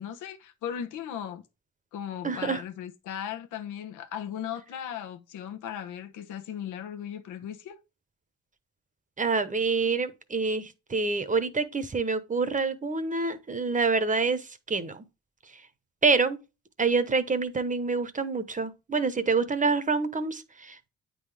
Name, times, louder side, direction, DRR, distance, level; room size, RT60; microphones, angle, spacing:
voice 1, 0.0-1.4 1.9-7.8, left 9 dB, 90° left, 1.0 m, -37 dB
voice 2, 2.2-2.6 9.2-15.0 16.0-16.4 16.8-20.9, right 4 dB, 25° right, 0.9 m, -27 dB
9.0 x 3.9 x 3.4 m
cardioid pair, 90°, 30 cm